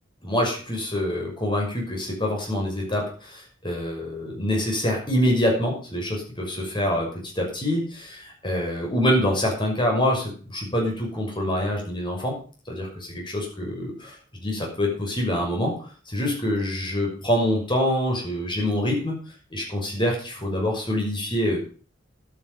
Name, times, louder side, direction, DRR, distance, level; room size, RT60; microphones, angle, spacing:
voice 1, 0.2-7.1 7.3-12.3 12.7-15.7 16.1-19.2 19.5-21.6, left 1 dB, 25° left, 0 dB, 6.2 m, -25 dB
11.5 x 9.6 x 7.3 m, 0.41 s
head